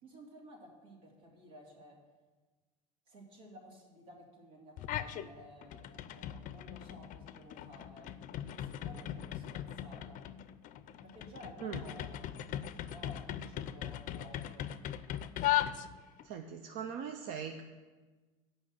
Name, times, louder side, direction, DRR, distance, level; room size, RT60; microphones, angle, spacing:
voice 1, 0.0-2.0 3.1-10.2 11.0-12.3 12.5-14.7, equal, 85° right, -2 dB, 2.7 m, -54 dB
sound 1, 4.8-5.3 5.6-16.3, left 12 dB, 50° left, 0.5 m, -38 dB
voice 2, 16.2-17.6, right 7 dB, 60° right, 5 dB, 0.7 m, -40 dB
8.2 x 5.4 x 7.6 m, 1.3 s
supercardioid pair, 95°, 18 cm